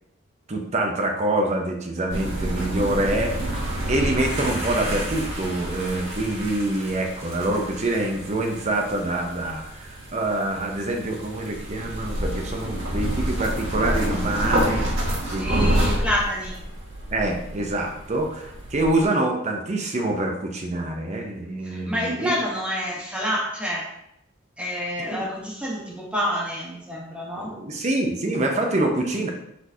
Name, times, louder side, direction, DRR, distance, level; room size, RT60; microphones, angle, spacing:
voice 1, 0.5-3.6 3.9-14.9 15.3-15.9 17.1-22.4 25.1-25.2 27.4-29.3, right 1 dB, 35° right, 2 dB, 0.6 m, -26 dB
sound 1, 2.1-19.0, right 1 dB, 65° right, 1.5 m, -28 dB
voice 2, 15.4-16.6 21.6-23.9 24.6-27.5, equal, 5° right, -5 dB, 1.0 m, -28 dB
4.6 x 4.2 x 2.7 m, 0.78 s
head